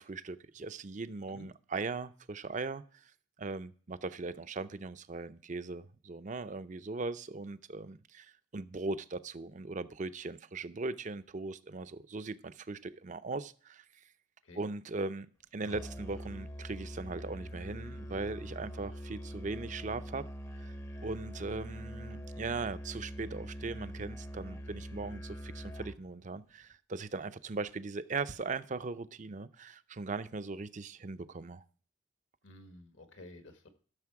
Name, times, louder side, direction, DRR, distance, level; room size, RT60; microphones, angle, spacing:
voice 1, 0.0-3.0 3.4-13.8 14.6-20.2 20.6-20.7 21.0-31.6, right 3 dB, 40° right, 0.5 m, -39 dB
Musical instrument, 15.7-26.0, equal, 15° left, 0.7 m, -43 dB
voice 2, 32.4-33.7, left 1 dB, 75° left, 1.7 m, -52 dB
13.5 x 6.7 x 4.7 m
head